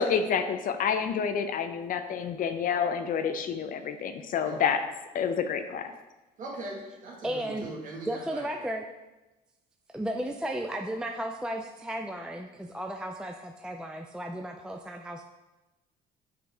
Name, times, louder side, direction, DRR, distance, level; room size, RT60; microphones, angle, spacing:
voice 1, 0.0-4.8 5.1-5.9, left 7 dB, 55° left, 8 dB, 0.5 m, -28 dB
voice 2, 6.4-8.5, right 2 dB, 50° right, -2 dB, 1.7 m, -40 dB
voice 3, 7.2-7.7 8.1-8.8 9.9-15.2, right 1 dB, 5° right, 3 dB, 0.3 m, -34 dB
6.2 x 5.1 x 3.5 m, 1.1 s
cardioid pair, 110°, 17 cm